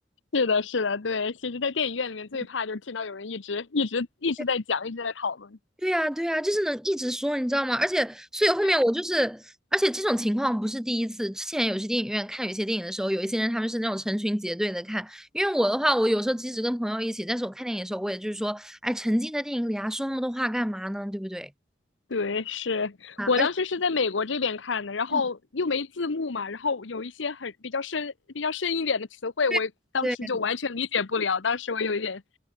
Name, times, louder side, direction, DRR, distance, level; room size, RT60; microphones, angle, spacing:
voice 1, 0.3-5.6 22.1-29.7 29.9-32.2, left 4 dB, 85° left, 0.9 m, -28 dB
voice 2, 5.8-21.5 23.2-23.5 25.1-25.2 29.5-29.6 30.0-30.3, equal, 5° right, 2.6 m, -27 dB
head